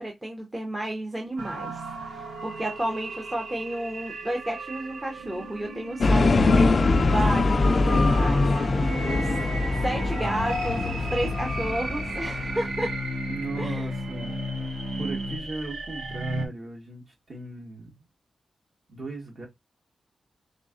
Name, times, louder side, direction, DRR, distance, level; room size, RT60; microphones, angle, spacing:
voice 1, 0.0-12.9 13.6-13.9, right 1 dB, 15° right, 0.8 m, -32 dB
sound 1, 1.4-16.5, right 2 dB, 85° right, 1.1 m, -36 dB
sound 2, 6.0-12.8, left 3 dB, 40° left, 0.3 m, -23 dB
sound 3, 6.5-15.4, left 1 dB, 70° right, 1.6 m, -36 dB
voice 2, 7.8-8.2 12.7-12.9 13.2-17.9 18.9-19.5, right 3 dB, 45° right, 1.7 m, -38 dB
3.7 x 3.5 x 2.5 m
wide cardioid pair, 175°, 0 cm